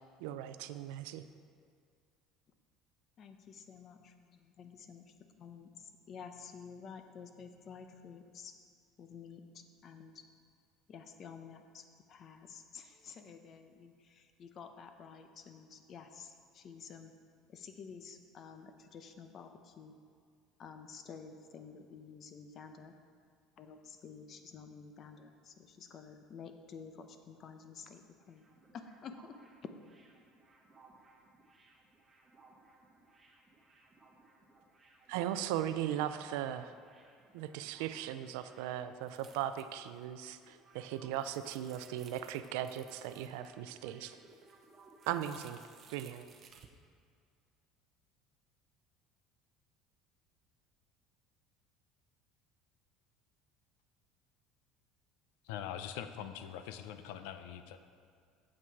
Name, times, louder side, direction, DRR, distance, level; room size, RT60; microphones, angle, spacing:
voice 1, 0.2-1.2 35.1-36.7 37.3-44.2 45.1-45.6 45.9-46.3, right 11 dB, 85° right, 11 dB, 0.4 m, -38 dB
voice 2, 3.2-5.7 6.1-8.5 9.0-9.4 9.8-10.1 10.9-17.1 17.5-20.0 20.6-22.9 23.6-28.4 28.7-29.4, left 6 dB, 40° left, 7 dB, 0.7 m, -51 dB
sound 1, 28.1-39.6 39.9-40.0 40.3-45.3, right 3 dB, 15° right, 1.3 m, -63 dB
sound 2, 39.0-40.0 40.2-40.3 40.8-43.5 43.9-46.7, right 7 dB, 35° right, 0.7 m, -60 dB
voice 3, 55.4-57.8, left 9 dB, 85° left, 9 dB, 0.5 m, -43 dB
8.6 x 7.3 x 4.7 m, 2.2 s
cardioid pair, 145°, 0 cm